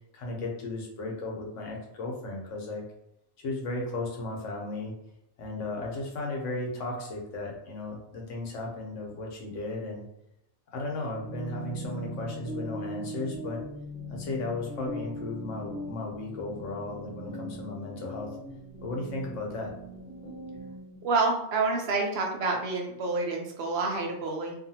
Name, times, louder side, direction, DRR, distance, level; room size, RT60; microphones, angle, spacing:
voice 1, 0.1-2.8 3.4-4.9 5.4-10.0 10.7-13.6 14.1-18.4 18.8-19.7, left 2 dB, 85° left, 0 dB, 1.1 m, -35 dB
sound 1, 11.0-21.0, equal, 30° left, 0.9 m, -40 dB
voice 2, 21.0-24.6, right 3 dB, 65° right, 1 dB, 0.8 m, -28 dB
2.6 x 2.4 x 2.7 m, 0.83 s
omnidirectional pair, 1.2 m